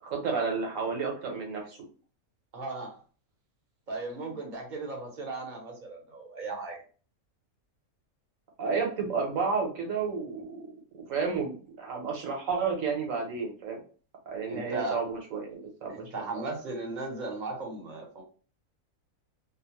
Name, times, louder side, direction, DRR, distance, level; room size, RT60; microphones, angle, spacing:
voice 1, 0.0-1.8 8.6-10.6 10.9-13.8 14.3-16.4, right 5 dB, 65° right, 1 dB, 1.2 m, -31 dB
voice 2, 2.5-3.0 3.9-6.8 14.5-15.0 15.9-18.2, right 3 dB, 40° right, 0 dB, 0.8 m, -36 dB
2.8 x 2.0 x 2.9 m, 0.39 s
omnidirectional pair, 1.5 m